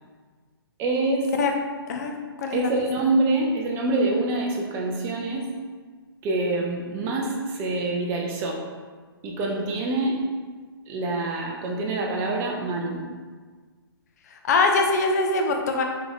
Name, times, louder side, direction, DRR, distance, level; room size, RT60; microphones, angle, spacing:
voice 1, 0.8-1.3 2.5-5.5 6.2-8.6 9.2-10.2 10.9-13.0, right 2 dB, 20° right, -1 dB, 0.5 m, -25 dB
voice 2, 1.9-2.7 14.3-15.8, left 3 dB, 40° left, 3 dB, 0.5 m, -23 dB
4.6 x 3.3 x 2.5 m, 1.5 s
figure-of-eight pair, 125°, 13 cm